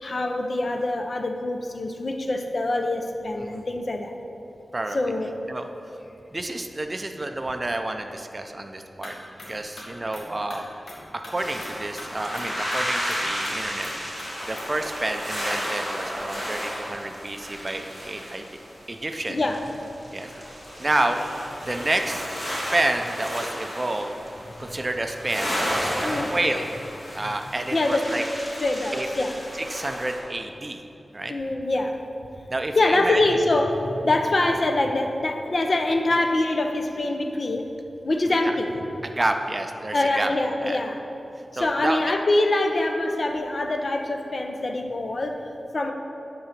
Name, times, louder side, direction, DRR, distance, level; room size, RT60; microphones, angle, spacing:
voice 1, 0.0-4.1 4.9-5.3 19.3-19.6 26.0-26.3 27.2-27.3 27.7-28.0 28.6-29.3 31.3-32.0 32.8-37.7 38.0-38.8 39.9-41.0 41.5-45.9, left 2 dB, 45° left, 5 dB, 0.6 m, -24 dB
voice 2, 6.3-9.1 9.5-10.6 11.1-13.9 14.5-18.5 18.9-19.4 20.1-20.3 20.8-21.2 21.7-22.4 22.7-24.2 24.6-26.7 27.1-28.2 28.9-29.1 29.6-30.8 31.1-31.3 32.5-33.2 39.0-40.3 40.6-40.8 41.6-42.0, right 2 dB, 30° right, 5 dB, 0.4 m, -29 dB
sound 1, 9.0-9.1 9.4-9.5 9.8-10.6 10.9-11.0 11.2-11.3 11.6-11.7 12.0-12.1 12.3-12.4 12.7-12.8 13.1-13.5 13.8-13.9 14.2-14.3 14.5-14.7, left 2 dB, 85° left, 1.5 m, -40 dB
sound 2, 11.4-30.2, equal, 25° left, 1.9 m, -33 dB
9.5 x 3.8 x 5.8 m, 2.9 s
wide cardioid pair, 105°, 0 cm